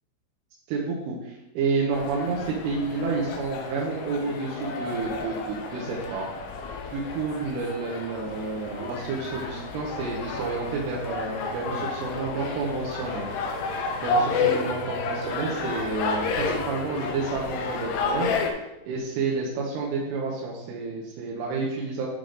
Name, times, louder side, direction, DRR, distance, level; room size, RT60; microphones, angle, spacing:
voice 1, 0.7-6.3 6.9-13.3 14.0-18.3 18.9-22.1, right 4 dB, 90° right, -4 dB, 3.4 m, -30 dB
sound 1, 1.9-18.5, left 4 dB, 85° left, 3.0 m, -31 dB
sound 2, 8.5-16.9, right 1 dB, 65° left, 2.1 m, -47 dB
10.0 x 3.4 x 3.8 m, 0.93 s
omnidirectional pair, 5.5 m